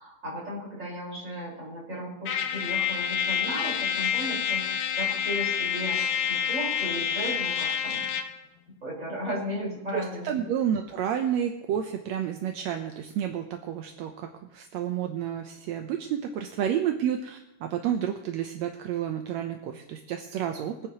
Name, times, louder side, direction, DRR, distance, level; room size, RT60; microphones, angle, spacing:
voice 1, 0.0-6.0 6.3-8.0 8.8-10.5, equal, 20° right, -5 dB, 5.2 m, -35 dB
Trumpet, 2.2-8.4, left 8 dB, 70° left, 1.7 m, -28 dB
voice 2, 9.9-20.8, right 9 dB, 75° right, 4 dB, 1.7 m, -30 dB
23.5 x 9.6 x 3.0 m, 0.85 s
omnidirectional pair, 3.8 m